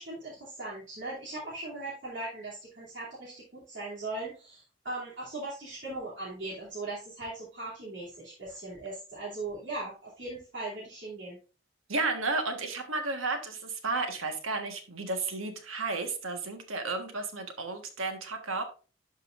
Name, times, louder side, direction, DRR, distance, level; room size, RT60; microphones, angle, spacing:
voice 1, 0.0-11.4, right 2 dB, 65° right, -8 dB, 2.8 m, -39 dB
voice 2, 11.9-18.6, right 3 dB, 85° right, 6 dB, 1.4 m, -33 dB
11.5 x 5.4 x 2.5 m, 0.34 s
head